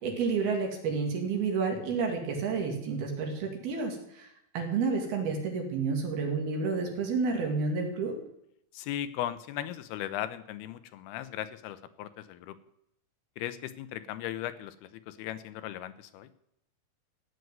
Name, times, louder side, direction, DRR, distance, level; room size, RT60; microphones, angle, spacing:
voice 1, 0.0-4.3 4.5-8.1, right 4 dB, 70° right, 2 dB, 4.3 m, -30 dB
voice 2, 8.7-12.6 13.4-16.3, left 12 dB, 80° left, 12 dB, 2.7 m, -37 dB
16.0 x 6.6 x 9.3 m, 0.77 s
omnidirectional pair, 4.6 m